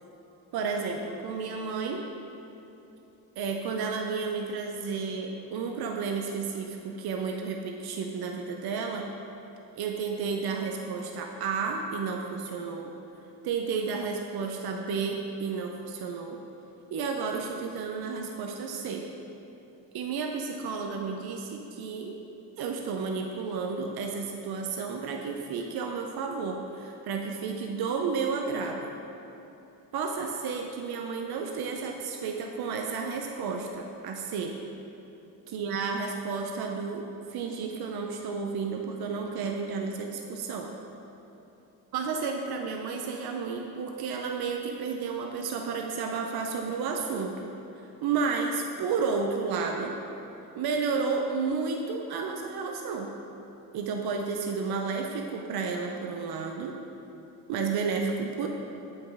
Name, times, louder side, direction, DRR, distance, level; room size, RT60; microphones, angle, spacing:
voice 1, 0.5-2.0 3.4-9.1 9.7-13.0 13.4-16.4 16.9-19.1 19.9-22.2 22.6-28.9 29.9-34.6 35.5-40.7 41.9-47.5 48.0-49.9 50.5-53.1 53.7-56.8 57.5-58.5, right 5 dB, 70° right, 2 dB, 0.6 m, -32 dB
7.8 x 5.5 x 3.5 m, 3.0 s
cardioid pair, 70°, 38 cm